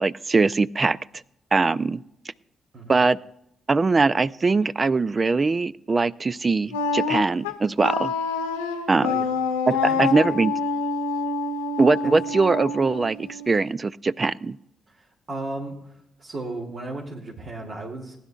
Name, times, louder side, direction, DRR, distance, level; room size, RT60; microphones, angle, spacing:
voice 1, 0.0-1.0 1.5-2.0 2.9-3.2 3.7-8.1 8.9-9.1 10.0-10.5 11.8-14.6, right 3 dB, 35° right, 19 dB, 0.4 m, -21 dB
Wind instrument woodwind instrument, 6.7-13.7, left 4 dB, 85° left, 0.9 m, -27 dB
voice 2, 9.0-9.4 9.7-10.4 12.0-12.2 14.9-18.1, right 2 dB, 55° right, -3 dB, 2.6 m, -36 dB
19.5 x 11.0 x 2.4 m, 0.80 s
hypercardioid pair, 40°, 0 cm